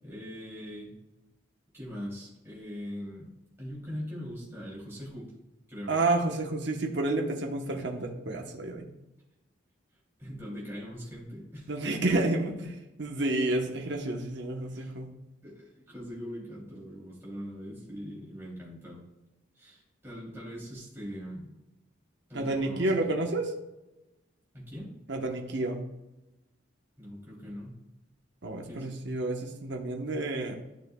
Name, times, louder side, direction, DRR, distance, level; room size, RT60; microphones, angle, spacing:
voice 1, 0.0-0.9 1.7-3.3 3.6-5.3 5.7-6.0 10.2-11.7 14.6-15.0 15.4-19.0 19.5-21.5 22.3-23.3 24.5-24.9 27.0-27.8 28.7-29.2, equal, 10° right, -7 dB, 2.9 m, -41 dB
voice 2, 5.9-8.9 11.7-12.5 13.0-15.1 22.3-23.5 25.1-25.8 28.4-30.6, right 2 dB, 65° right, 2 dB, 1.0 m, -30 dB
12.0 x 6.3 x 2.3 m, 1.0 s
head